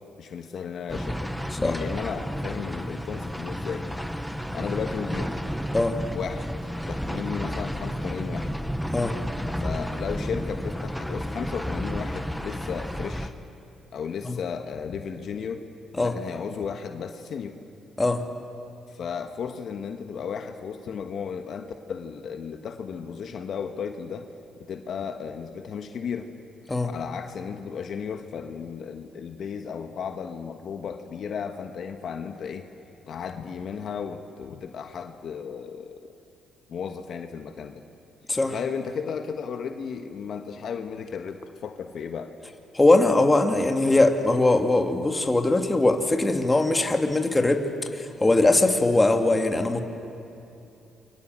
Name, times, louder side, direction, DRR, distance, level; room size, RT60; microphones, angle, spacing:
voice 1, 0.2-3.9 4.5-5.3 6.1-6.5 6.9-8.5 9.6-13.3 13.9-15.6 16.0-17.6 18.9-24.3 24.6-26.3 26.8-32.7 33.1-36.0 36.7-37.8 38.5-42.3, left 6 dB, 60° left, 6 dB, 1.5 m, -34 dB
sound 1, 0.9-13.3, equal, ahead, 1.3 m, -32 dB
voice 2, 42.7-47.7 47.9-49.8, left 2 dB, 15° left, 5 dB, 2.3 m, -21 dB
29.0 x 24.0 x 7.7 m, 2.7 s
cardioid pair, 90°, 0 cm